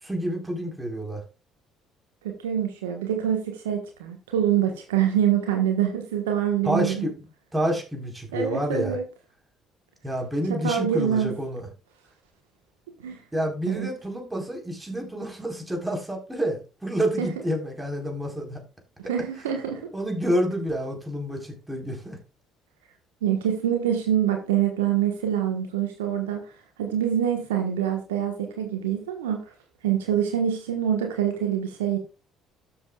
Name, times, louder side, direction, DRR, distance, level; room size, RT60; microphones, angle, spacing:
voice 1, 0.0-1.2 6.6-7.1 7.5-9.0 10.0-11.7 13.3-18.6 19.9-22.2, equal, 10° right, 1 dB, 4.1 m, -28 dB
voice 2, 2.2-7.1 8.3-9.0 10.5-11.3 13.0-13.2 13.7-13.9 17.2-17.3 19.1-19.9 23.2-26.4 26.8-29.4 29.8-32.0, right 9 dB, 80° right, 4 dB, 1.3 m, -25 dB
13.0 x 6.9 x 2.4 m, 0.31 s
hypercardioid pair, 55°, 0 cm